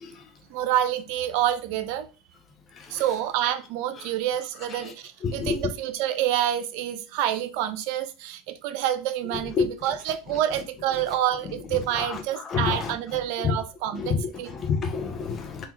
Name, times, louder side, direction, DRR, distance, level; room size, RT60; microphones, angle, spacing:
voice 1, 0.5-2.1 2.9-14.5, right 11 dB, 65° right, 0.6 m, -28 dB
voice 2, 5.2-5.7 9.3-9.7 11.9-12.9 13.4-13.6 13.9-15.7, left 5 dB, 35° left, 1.1 m, -29 dB
3.9 x 2.9 x 4.6 m
hypercardioid pair, 85°, 0 cm